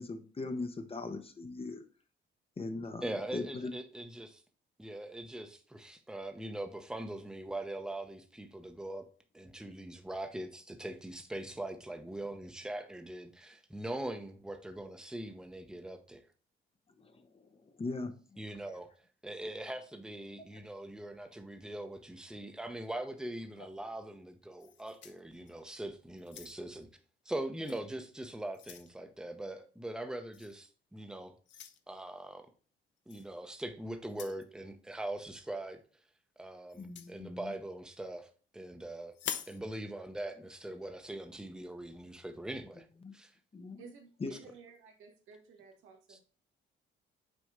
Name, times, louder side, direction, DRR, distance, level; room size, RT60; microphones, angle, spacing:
voice 1, 0.0-1.8 2.6-3.0 3.3-3.7 17.8-18.1 20.5-20.6 36.8-37.5 43.0-43.1 43.5-43.8 44.2-44.3, left 3 dB, 30° left, 0.9 m, -39 dB
voice 2, 3.0-4.4 4.8-9.1 9.3-16.2 18.4-18.9 19.2-26.9 27.2-31.4 31.9-32.5 33.1-35.8 36.4-39.1 39.5-42.9 43.1-43.3 46.1-46.2, right 1 dB, 5° right, 0.8 m, -42 dB
sound 1, 24.6-25.7 26.2-26.8 27.6-27.8 28.2-28.9 30.3-30.6 31.5-31.8 33.1-33.3 34.0-34.5 36.7-37.1 39.1-39.6, left 9 dB, 65° left, 0.7 m, -45 dB
voice 3, 43.8-46.2, right 5 dB, 85° right, 1.6 m, -54 dB
6.3 x 4.2 x 3.7 m
cardioid pair, 90°, 20 cm